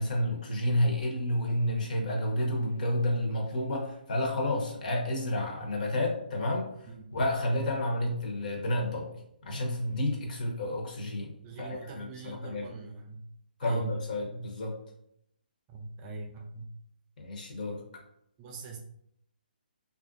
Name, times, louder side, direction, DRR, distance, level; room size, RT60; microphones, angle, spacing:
voice 1, 0.0-9.1 9.4-11.3 11.6-12.7 13.6-14.7 17.2-17.8, left 1 dB, 55° left, 0 dB, 0.8 m, -30 dB
voice 2, 11.4-13.2 13.6-14.0 15.7-16.7 18.4-18.8, right 3 dB, 20° right, 0 dB, 0.3 m, -41 dB
3.3 x 2.5 x 2.4 m, 0.72 s
figure-of-eight pair, 140°, 5 cm